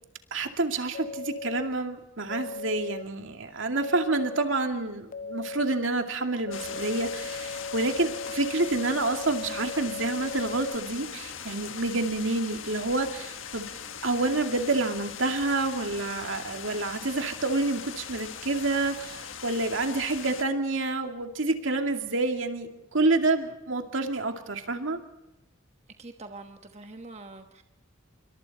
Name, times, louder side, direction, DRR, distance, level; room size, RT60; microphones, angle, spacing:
voice 1, 0.3-13.7 14.0-25.0, right 2 dB, 70° right, 5 dB, 2.4 m, -28 dB
sound 1, 0.9-1.7 2.3-3.0 3.8-4.5 5.1-5.8 6.5-10.8, left 4 dB, 40° left, 0.7 m, -37 dB
sound 2, 6.5-20.4, left 8 dB, 75° left, 1.6 m, -40 dB
voice 2, 26.0-27.6, right 2 dB, 35° right, 5 dB, 1.2 m, -44 dB
27.5 x 24.0 x 4.2 m, 0.91 s
head